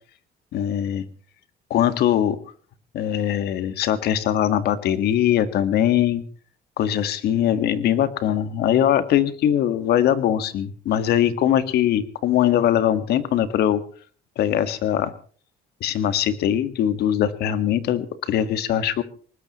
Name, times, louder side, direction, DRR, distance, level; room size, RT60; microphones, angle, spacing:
voice 1, 0.5-1.0 1.7-2.4 2.9-6.2 6.8-13.8 14.4-15.1 15.8-19.0, left 10 dB, 70° left, 12 dB, 1.7 m, -21 dB
24.0 x 20.0 x 3.1 m, 0.43 s
cardioid pair, 110°, 17 cm